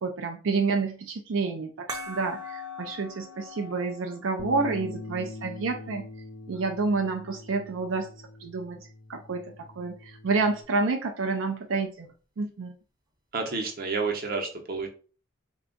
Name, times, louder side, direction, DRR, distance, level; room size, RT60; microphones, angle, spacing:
voice 1, 0.0-6.1 6.5-8.1 8.4-8.8 9.1-12.1 12.4-12.7, right 4 dB, 85° right, 5 dB, 0.4 m, -29 dB
sound 1, 1.9-7.0, left 2 dB, 20° right, 0.5 m, -43 dB
Bass guitar, 4.4-10.6, left 2 dB, 70° left, 0.6 m, -43 dB
voice 2, 13.3-14.9, right 4 dB, 50° right, 3 dB, 0.8 m, -30 dB
3.4 x 2.3 x 3.8 m, 0.37 s
head